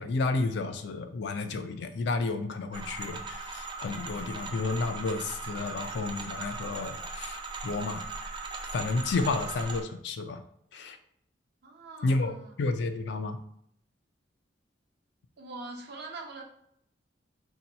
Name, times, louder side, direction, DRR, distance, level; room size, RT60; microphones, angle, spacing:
voice 1, 0.0-8.1 8.7-10.4 10.7-11.0 12.0-13.4, left 3 dB, 65° left, 8 dB, 0.4 m, -31 dB
sound 1, 2.7-9.8, right 3 dB, 25° right, 0.3 m, -39 dB
voice 2, 11.6-12.5 15.4-16.4, right 3 dB, 60° right, 2 dB, 0.6 m, -43 dB
2.8 x 2.2 x 4.0 m, 0.70 s
head